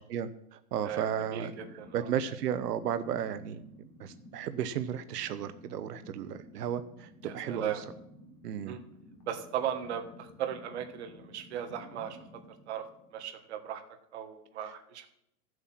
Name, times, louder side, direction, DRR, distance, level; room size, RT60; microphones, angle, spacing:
voice 1, 0.1-1.5 1.9-3.6 4.0-7.7 8.4-8.8, right 9 dB, 90° right, 12 dB, 0.9 m, -34 dB
voice 2, 0.8-2.1 7.2-7.8 8.6-8.8 9.3-12.2 12.7-12.9 13.1-13.8 14.1-15.1, right 9 dB, 45° right, 6 dB, 1.5 m, -37 dB
sound 1, 0.9-13.5, left 1 dB, 15° left, 0.7 m, -53 dB
14.0 x 7.9 x 5.9 m, 0.79 s
supercardioid pair, 180°, 46 cm